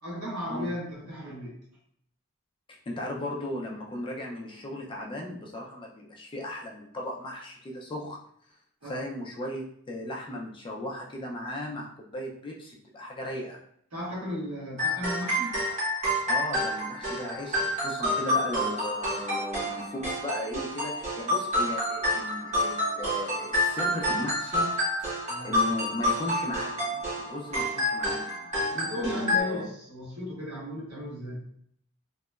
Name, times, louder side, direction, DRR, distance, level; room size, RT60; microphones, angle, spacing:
voice 1, 0.0-1.6 8.8-9.0 13.9-15.6 25.3-25.5 28.7-31.4, left 1 dB, 75° right, -5 dB, 1.1 m, -36 dB
voice 2, 2.9-8.2 8.9-13.6 16.3-24.7 25.0-25.1 25.4-28.5 28.9-29.7, left 1 dB, 20° left, -1 dB, 0.3 m, -36 dB
sound 1, 14.8-29.4, left 1 dB, 30° right, 0.8 m, -28 dB
2.8 x 2.1 x 2.2 m, 0.67 s
head